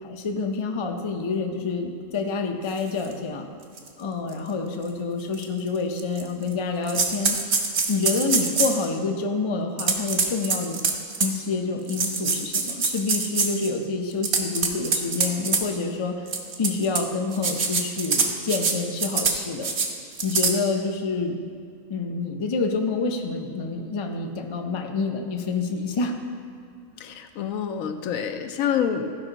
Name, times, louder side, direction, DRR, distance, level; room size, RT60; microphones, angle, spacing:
voice 1, 0.0-3.5 4.0-7.4 7.9-10.8 11.2-16.3 16.6-19.7 20.2-21.4 21.9-26.2, left 4 dB, 40° left, 3 dB, 0.4 m, -27 dB
sound 1, 3.0-3.1 3.8-3.9 4.3-4.4 5.3-5.4 6.0-6.5 6.9-8.8 9.8-11.4 11.9-13.7 14.1-15.6 16.3-17.0 17.3-18.7 19.0-19.4 19.6-19.9 20.2-20.5, right 4 dB, 55° right, 1.1 m, -24 dB
voice 2, 27.0-29.2, left 8 dB, 75° left, 7 dB, 1.0 m, -27 dB
14.5 x 5.3 x 3.9 m, 2.2 s
omnidirectional pair, 1.4 m